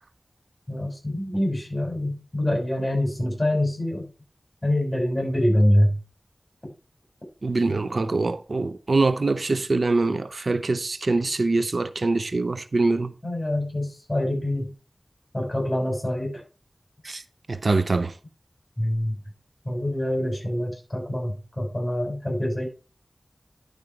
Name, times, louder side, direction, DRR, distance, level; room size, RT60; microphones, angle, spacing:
voice 1, 0.7-4.1 4.6-6.0 13.2-14.7 15.3-16.4 17.0-17.2 18.8-19.1 19.6-22.7, left 1 dB, 25° left, 6.1 m, -25 dB
voice 2, 7.4-13.1 17.1-17.2 17.5-18.1, right 3 dB, 80° right, 0.6 m, -24 dB
11.0 x 5.1 x 4.6 m
wide cardioid pair, 50°, 0 cm